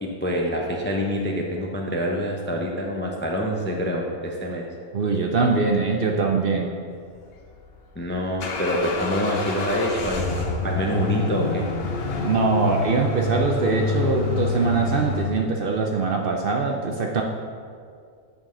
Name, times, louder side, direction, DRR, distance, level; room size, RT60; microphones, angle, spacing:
voice 1, 0.0-4.6 8.0-11.7, equal, 15° left, 0 dB, 0.4 m, -26 dB
voice 2, 4.9-6.7 12.1-17.2, right 4 dB, 55° right, 1 dB, 0.6 m, -22 dB
sound 1, 7.4-15.3, left 3 dB, 55° left, 0.9 m, -27 dB
8.9 x 5.3 x 3.8 m, 2.2 s
omnidirectional pair, 1.3 m